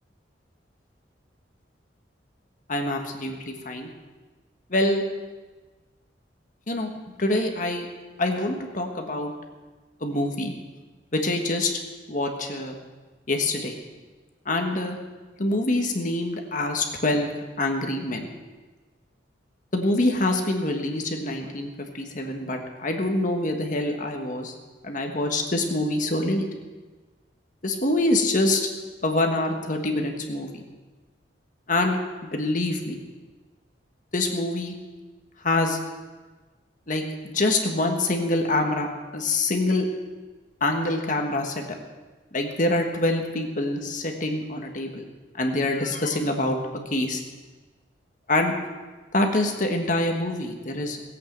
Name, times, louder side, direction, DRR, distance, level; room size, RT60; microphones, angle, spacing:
voice 1, 2.7-3.9 4.7-5.0 6.7-6.9 7.2-7.9 8.2-9.3 10.0-10.5 11.1-11.8 12.1-12.7 13.3-13.8 14.4-15.0 15.4-17.3 17.6-18.3 19.7-24.5 24.8-26.4 27.6-28.7 29.0-30.6 31.7-33.0 34.1-34.8 35.4-35.8 36.9-38.9 39.1-39.9 40.6-41.8 42.3-45.0 45.4-46.6 46.9-47.2 48.3-48.5 49.1-51.0, left 2 dB, 45° left, 3 dB, 1.5 m, -25 dB
18.0 x 8.5 x 7.5 m, 1.3 s
head